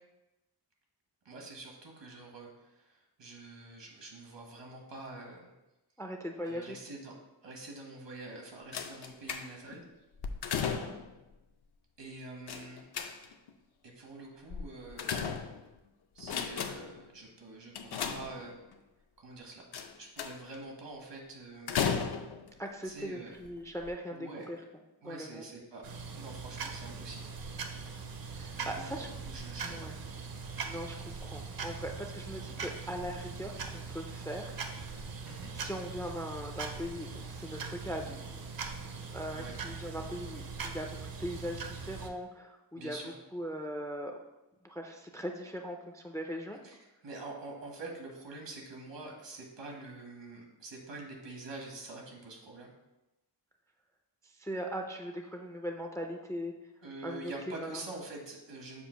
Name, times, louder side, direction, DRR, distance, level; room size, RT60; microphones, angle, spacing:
voice 1, 1.2-5.5 6.4-7.1 7.4-9.8 12.0-12.9 13.8-15.3 16.1-18.5 19.2-19.7 20.0-21.8 22.8-23.3 24.1-24.5 25.0-27.2 28.5-29.9 35.2-35.5 39.4-39.5 42.8-43.2 46.6-46.8 47.0-52.7 56.8-58.9, right 2 dB, 80° right, 0 dB, 1.4 m, -46 dB
voice 2, 6.0-6.8 10.6-11.0 22.6-24.6 25.0-25.5 28.3-29.1 29.6-30.0 30.6-34.9 35.5-38.4 39.1-40.9 41.2-43.0 43.3-44.2 44.6-46.6 54.2-56.5 57.0-57.8, equal, 10° left, 3 dB, 0.3 m, -40 dB
sound 1, 8.7-9.8 10.2-11.2 12.5-13.5 14.5-15.8 16.2-17.0 17.7-18.7 19.7-20.6 21.7-22.5 23.3-23.5 23.8-23.9, left 6 dB, 65° left, 0.5 m, -35 dB
sound 2, 25.8-42.1, right 5 dB, 55° right, 0.6 m, -41 dB
7.0 x 2.5 x 5.6 m, 0.99 s
wide cardioid pair, 175°, 43 cm